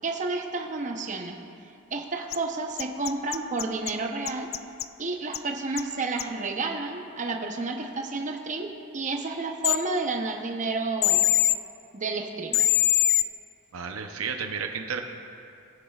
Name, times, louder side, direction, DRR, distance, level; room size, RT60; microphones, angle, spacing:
voice 1, 0.0-1.4 1.9-4.5 5.0-11.3 11.9-12.7, right 3 dB, 35° right, 3 dB, 0.8 m, -31 dB
sound 1, 2.3-2.4 2.8-3.9 4.3-4.8 5.3-5.4 5.8-5.9 6.2-6.3 9.6-9.8 11.0-11.6 12.5-13.2, left 14 dB, 50° left, 0.3 m, -22 dB
voice 2, 13.7-15.0, right 6 dB, 80° right, 4 dB, 0.7 m, -32 dB
19.0 x 9.7 x 2.4 m, 2.5 s
head